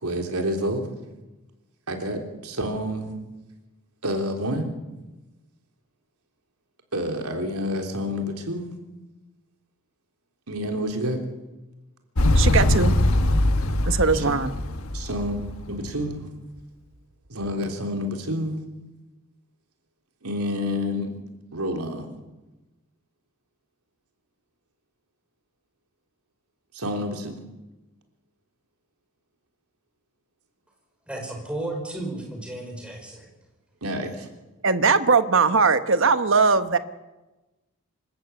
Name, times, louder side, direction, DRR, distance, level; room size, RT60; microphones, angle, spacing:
voice 1, 0.0-0.9 1.9-3.1 4.0-4.7 6.9-8.8 10.5-11.2 14.1-14.2 14.9-15.4 15.7-16.3 17.3-18.7 20.2-21.1 21.5-22.1 26.7-27.4 33.8-34.3, equal, 85° right, 3.5 m, -28 dB
Motorcycle, 12.2-16.1, left 1 dB, 70° left, 1.4 m, -22 dB
voice 2, 12.3-12.9 13.9-14.5 34.6-36.8, right 4 dB, 60° right, 1.1 m, -20 dB
voice 3, 31.1-33.3, right 2 dB, 5° right, 5.2 m, -33 dB
26.0 x 14.0 x 8.4 m
head